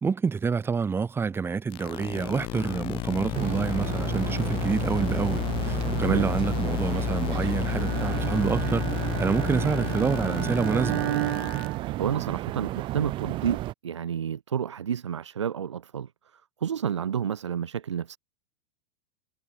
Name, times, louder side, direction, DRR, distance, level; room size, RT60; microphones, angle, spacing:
voice 1, 0.0-8.9 9.2-11.0, right 5 dB, 15° right, 2.4 m, -27 dB
sound 1, 1.7-11.7, left 17 dB, 35° left, 1.6 m, -31 dB
sound 2, 3.3-13.7, right 16 dB, 30° right, 1.0 m, -32 dB
Bowed string instrument, 7.6-12.6, right 16 dB, 50° right, 1.2 m, -34 dB
voice 2, 12.0-16.1 16.6-18.2, right 8 dB, 65° right, 1.6 m, -30 dB
figure-of-eight pair, 95°, 16 cm